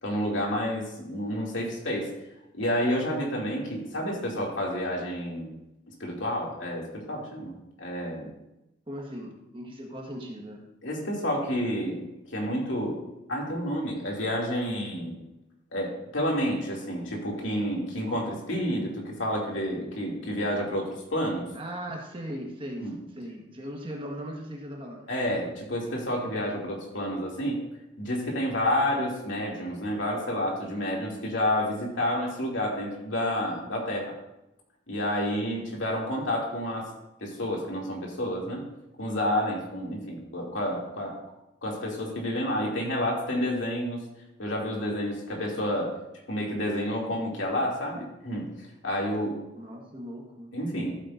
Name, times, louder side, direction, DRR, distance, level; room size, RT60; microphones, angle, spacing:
voice 1, 0.0-2.1 2.5-5.5 6.0-8.3 10.8-12.0 12.3-13.0 13.3-15.2 15.7-21.5 22.8-22.9 25.1-27.6 28.0-34.1 34.9-36.9 37.2-38.6 39.0-41.1 41.6-44.0 44.4-45.9 46.3-48.5 48.8-49.4 50.5-50.9, equal, 75° left, -2 dB, 2.6 m, -29 dB
voice 2, 8.9-10.6 21.5-25.1 49.6-50.5, equal, 25° right, 0 dB, 1.5 m, -38 dB
14.5 x 8.6 x 2.6 m, 0.90 s
head